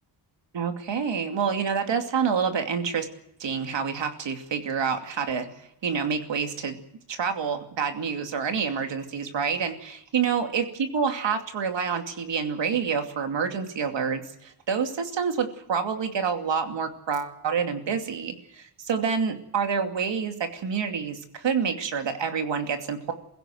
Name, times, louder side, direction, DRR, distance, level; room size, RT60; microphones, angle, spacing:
voice 1, 0.5-3.1 3.4-5.5 5.8-6.8 7.1-23.1, right 6 dB, 85° right, 6 dB, 2.7 m, -28 dB
23.0 x 16.0 x 7.9 m, 0.76 s
wide cardioid pair, 165°, 43 cm